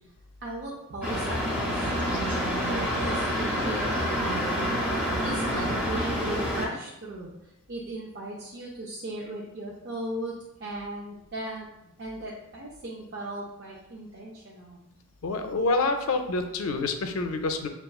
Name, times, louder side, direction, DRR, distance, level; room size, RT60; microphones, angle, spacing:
voice 1, 0.4-4.6 5.2-7.3 7.7-10.3 10.6-11.7 12.0-14.8, right 1 dB, 50° right, -5 dB, 0.5 m, -37 dB
sound 1, 1.0-6.7, equal, 5° right, 0.7 m, -27 dB
voice 2, 15.2-17.7, left 3 dB, 75° left, 6 dB, 0.4 m, -27 dB
6.6 x 2.3 x 2.3 m, 0.86 s
head